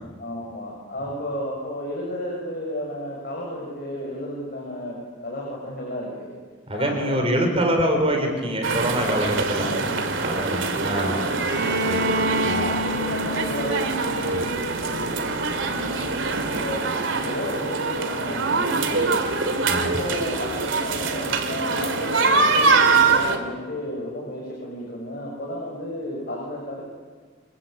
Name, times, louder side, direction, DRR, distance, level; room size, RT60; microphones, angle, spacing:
voice 1, 0.2-4.9 5.2-6.3 6.7-8.2 9.6-10.0 10.9-12.0 12.5-15.4 15.7-16.9 17.2-19.5 19.8-26.8, left 1 dB, 50° left, -3 dB, 6.7 m, -33 dB
voice 2, 6.7-9.7 10.1-11.1 11.8-12.7 14.3-14.5 19.6-19.9, right 1 dB, 30° right, 3 dB, 4.7 m, -25 dB
sound 1, 8.6-23.4, right 4 dB, 75° right, 2.8 m, -24 dB
Bowed string instrument, 11.5-15.3, equal, 55° right, 5.1 m, -29 dB
27.0 x 22.0 x 8.9 m, 1.5 s
head